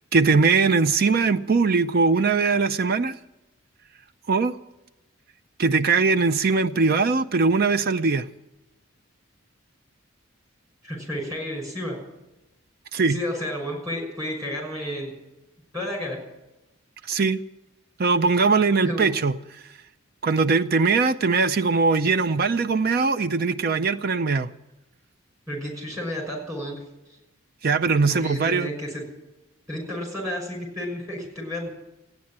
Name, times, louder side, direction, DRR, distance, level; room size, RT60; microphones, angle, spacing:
voice 1, 0.1-3.1 4.3-4.6 5.6-8.3 12.9-13.2 17.1-17.4 18.0-19.3 20.2-24.5 27.6-28.7, right 4 dB, 45° right, 0.5 m, -21 dB
voice 2, 10.8-12.0 13.1-15.1 15.7-16.2 18.8-19.1 25.5-26.8 28.0-29.0 29.7-31.7, left 1 dB, 15° right, 5.9 m, -31 dB
15.5 x 9.6 x 8.7 m
head